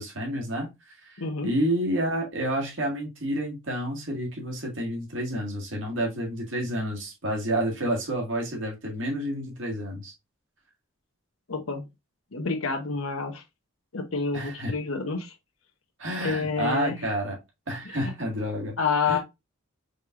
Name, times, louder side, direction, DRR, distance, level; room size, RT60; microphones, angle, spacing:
voice 1, 0.0-10.1 14.3-14.7 16.0-17.4 17.7-18.8 19.0-19.2, right 1 dB, 65° right, 1.8 m, -29 dB
voice 2, 1.2-1.5 11.5-11.8 12.3-13.4 13.9-15.3 16.2-16.9 18.0-18.1 18.8-19.2, left 4 dB, 85° left, 0.9 m, -28 dB
5.2 x 3.3 x 2.4 m
head